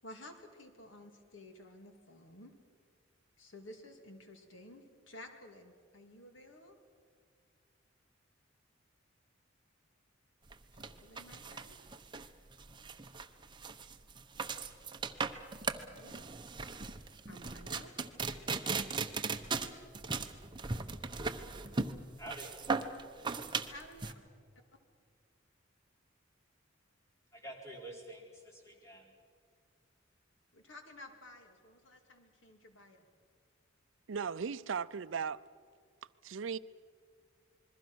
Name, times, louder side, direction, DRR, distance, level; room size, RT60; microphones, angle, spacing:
voice 1, 0.0-2.5 3.4-6.8 10.7-11.8 15.7-16.2 17.3-17.9 23.7-24.1 30.5-33.1, left 1 dB, 70° left, 2.6 m, -53 dB
sound 1, 10.5-24.1, right 4 dB, 25° right, 1.0 m, -38 dB
voice 2, 22.2-22.5 27.3-29.1, right 1 dB, 15° left, 4.4 m, -48 dB
voice 3, 34.1-35.4 36.2-36.6, right 6 dB, 70° right, 0.5 m, -37 dB
27.5 x 21.5 x 6.2 m
head